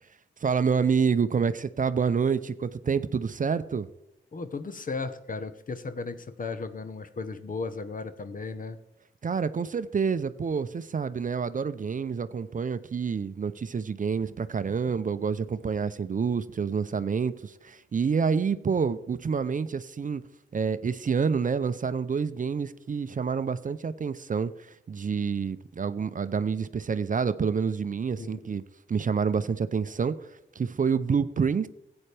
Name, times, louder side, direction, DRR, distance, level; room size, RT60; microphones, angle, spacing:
voice 1, 0.4-3.9 9.2-20.2 20.5-28.6 28.9-31.7, right 6 dB, 40° right, 13 dB, 0.6 m, -28 dB
voice 2, 4.3-8.8 28.2-28.4, left 4 dB, 40° left, 11 dB, 0.9 m, -35 dB
15.0 x 8.8 x 3.4 m, 0.85 s
cardioid pair, 70°, 21 cm